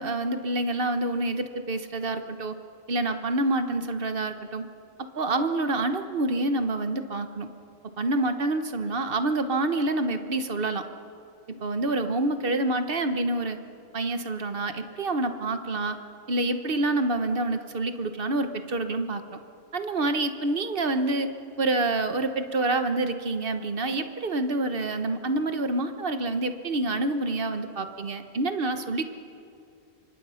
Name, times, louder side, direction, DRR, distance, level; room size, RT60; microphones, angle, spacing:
voice 1, 0.0-2.5 2.9-4.6 5.0-7.5 8.0-10.8 11.5-13.6 13.9-16.0 16.3-19.2 19.7-21.3 21.6-29.0, right 2 dB, 45° right, 8 dB, 1.4 m, -27 dB
26.0 x 24.5 x 5.8 m, 2.5 s
omnidirectional pair, 1.3 m